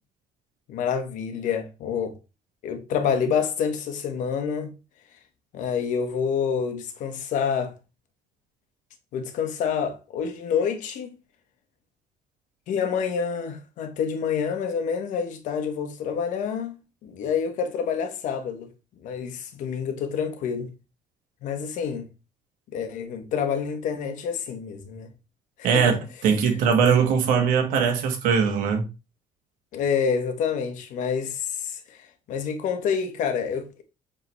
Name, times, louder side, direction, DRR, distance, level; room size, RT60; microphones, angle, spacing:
voice 1, 0.7-2.1 2.6-4.7 5.5-7.7 9.1-11.1 12.7-16.8 17.0-18.7 19.0-20.7 21.4-22.1 22.7-25.1 25.6-26.0 29.7-32.0 32.3-33.8, left 7 dB, 65° left, 1.2 m, -27 dB
voice 2, 25.6-28.8, right 6 dB, 80° right, 1.5 m, -21 dB
7.9 x 3.8 x 3.1 m
cardioid pair, 155°, 14 cm